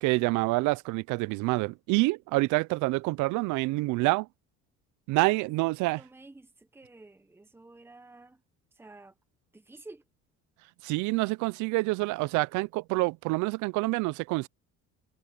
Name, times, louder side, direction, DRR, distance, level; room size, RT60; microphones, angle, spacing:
voice 1, 0.0-4.3 5.1-6.0 10.8-14.5, right 23 dB, 75° right, 0.5 m, -27 dB
voice 2, 5.1-8.4 8.7-9.1 9.5-10.0, right 2 dB, 10° right, 1.3 m, -51 dB
cardioid pair, 115°, 30 cm